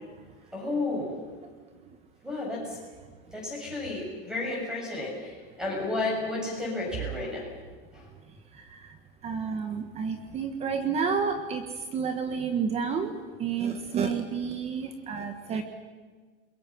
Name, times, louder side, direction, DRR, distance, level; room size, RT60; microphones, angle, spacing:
voice 1, 0.5-1.1 2.2-2.8 3.3-7.4 7.9-8.1, left 2 dB, ahead, -2 dB, 7.7 m, -32 dB
voice 2, 9.2-11.6 11.9-13.1 13.4-15.6, right 6 dB, 20° right, 8 dB, 1.3 m, -30 dB
30.0 x 22.0 x 6.3 m, 1.4 s
supercardioid pair, 170°, 30 cm